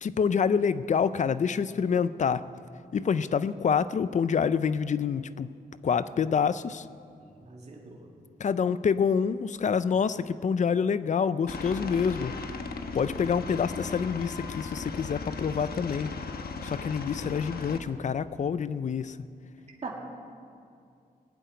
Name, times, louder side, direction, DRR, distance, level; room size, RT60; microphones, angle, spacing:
voice 1, 0.0-2.4 2.9-5.5 5.8-6.9 8.4-12.3 12.9-16.1 16.6-19.2, left 6 dB, 50° left, 15 dB, 0.5 m, -27 dB
voice 2, 7.2-8.1 19.8-20.0, right 4 dB, 40° right, -1 dB, 2.0 m, -41 dB
Aircraft, 11.5-17.8, left 4 dB, 75° left, 1.1 m, -37 dB
19.5 x 7.8 x 9.4 m, 2.4 s
wide cardioid pair, 150°, 16 cm